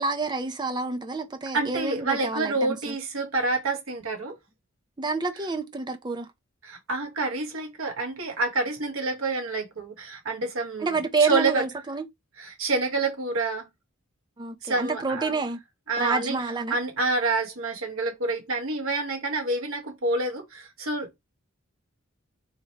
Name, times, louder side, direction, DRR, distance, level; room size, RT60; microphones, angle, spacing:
voice 1, 0.0-3.0 5.0-6.3 10.8-12.0 14.4-15.6 16.0-16.8, right 4 dB, 20° right, 0.6 m, -28 dB
voice 2, 1.5-4.4 6.6-11.6 12.4-13.7 14.6-15.4 15.9-16.4 16.7-21.2, right 3 dB, 75° right, 1.3 m, -28 dB
3.5 x 3.1 x 2.9 m
head